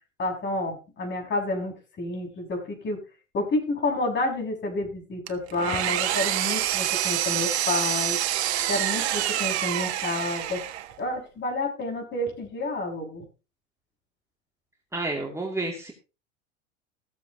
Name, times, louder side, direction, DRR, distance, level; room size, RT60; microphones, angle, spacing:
voice 1, 0.2-3.0 3.3-8.2 8.7-10.6 11.0-13.3, left 2 dB, 30° left, 1 dB, 6.3 m, -29 dB
Engine, 5.3-11.0, right 12 dB, 60° right, 1.5 m, -27 dB
voice 2, 14.9-15.9, right 2 dB, 5° right, -1 dB, 2.8 m, -30 dB
15.0 x 14.0 x 3.0 m, 0.32 s
figure-of-eight pair, 80°, 37 cm